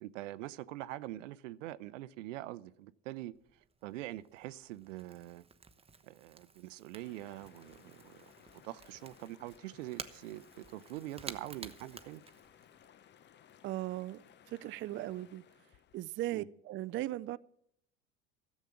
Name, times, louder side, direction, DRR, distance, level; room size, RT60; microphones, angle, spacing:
voice 1, 0.0-3.3 3.8-5.4 6.0-8.3 8.6-12.2 16.3-16.5, right 15 dB, 75° right, 0.6 m, -44 dB
Crackle / Crack, 3.3-12.9, right 5 dB, 15° right, 0.9 m, -52 dB
sound 1, 7.0-16.0, left 9 dB, 30° left, 0.6 m, -61 dB
voice 2, 13.6-15.4 15.9-17.4, right 15 dB, 35° right, 0.4 m, -38 dB
13.5 x 7.3 x 8.5 m
hypercardioid pair, 75°, 37 cm